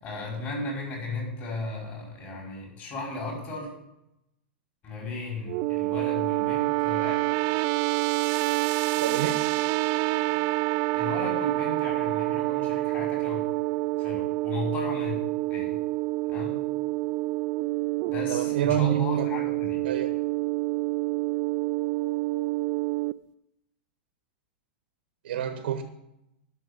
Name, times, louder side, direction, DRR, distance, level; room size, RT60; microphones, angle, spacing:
voice 1, 0.0-3.7 4.8-7.2 10.9-13.4 14.0-15.2 15.5-15.8 16.2-16.7 18.1-19.9, left 2 dB, 35° left, -1 dB, 5.3 m, -35 dB
sound 1, 5.5-23.1, right 22 dB, 45° right, 0.4 m, -27 dB
voice 2, 9.0-9.4 18.3-19.3 19.8-20.1 25.2-25.8, right 9 dB, 80° right, 8 dB, 1.1 m, -28 dB
9.8 x 6.5 x 8.2 m, 0.86 s
hypercardioid pair, 130°, 6 cm